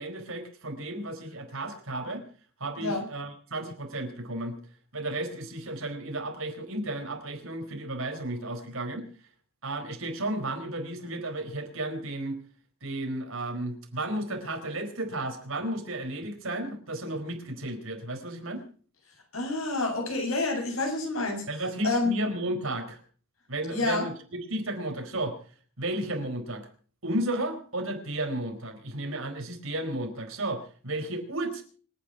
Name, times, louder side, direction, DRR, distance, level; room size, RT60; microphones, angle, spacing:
voice 1, 0.0-2.2 2.6-4.6 4.9-9.0 9.6-12.4 12.8-18.6 21.5-23.0 23.5-25.4 25.8-26.7 27.0-31.6, right 1 dB, 80° right, 5 dB, 4.5 m, -33 dB
voice 2, 19.3-21.4 21.8-22.1 23.7-24.1, left 2 dB, 90° left, 1 dB, 7.7 m, -28 dB
26.0 x 9.6 x 5.8 m, 0.43 s
head